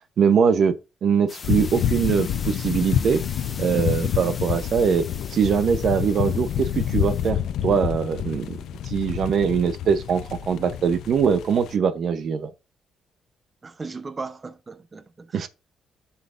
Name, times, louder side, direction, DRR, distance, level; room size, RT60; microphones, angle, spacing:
voice 1, 0.2-0.7 1.0-3.2 3.6-5.0 5.3-8.6 8.9-12.5 15.3-15.5, right 6 dB, 60° right, 0.8 m, -22 dB
sound 1, 1.3-7.3, left 4 dB, 35° left, 1.0 m, -42 dB
sound 2, 1.4-11.7, left 10 dB, 80° left, 0.5 m, -28 dB
voice 2, 13.6-15.5, right 4 dB, 30° right, 0.7 m, -37 dB
11.5 x 5.7 x 2.5 m
cardioid pair, 90°, 0 cm